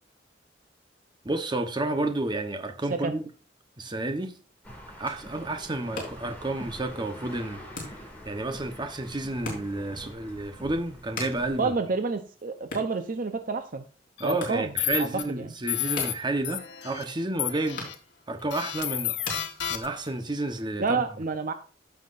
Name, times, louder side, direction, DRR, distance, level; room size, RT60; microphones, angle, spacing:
voice 1, 1.2-3.2 3.8-4.3 5.0-7.9 8.2-11.7 14.2-17.9 18.3-19.2 19.7-20.8, right 2 dB, 25° right, 0.9 m, -31 dB
sound 1, 4.6-11.7, equal, 10° left, 2.3 m, -45 dB
sound 2, 5.7-20.2, left 3 dB, 50° left, 3.9 m, -44 dB
voice 2, 11.6-13.8 14.2-14.7 15.0-15.1 15.3-15.5 20.8-21.5, right 4 dB, 50° right, 0.7 m, -29 dB
sound 3, 14.2-14.3 14.8-15.2 15.7-16.1 16.4-17.0 17.4-17.9 18.5-20.1, left 12 dB, 70° left, 1.1 m, -31 dB
15.0 x 5.9 x 2.5 m
head